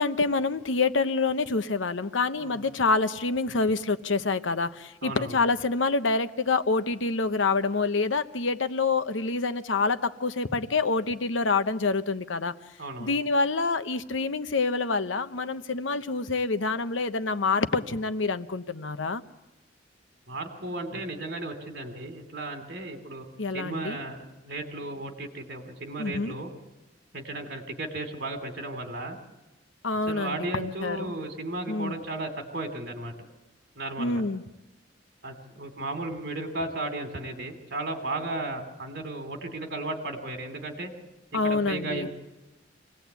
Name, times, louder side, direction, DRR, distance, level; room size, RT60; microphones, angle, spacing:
voice 1, 0.0-12.5 13.0-19.2 23.4-24.0 26.0-26.3 29.8-31.1 31.7-31.9 34.0-34.4 41.3-42.1, left 3 dB, 90° left, 11 dB, 0.9 m, -27 dB
voice 2, 5.0-5.4 12.8-13.1 20.3-23.3 23.5-26.5 27.1-29.2 30.1-33.1 33.8-34.2 35.2-40.9 41.4-42.1, right 2 dB, 65° right, 5 dB, 3.0 m, -35 dB
25.5 x 18.5 x 8.2 m, 1.0 s
head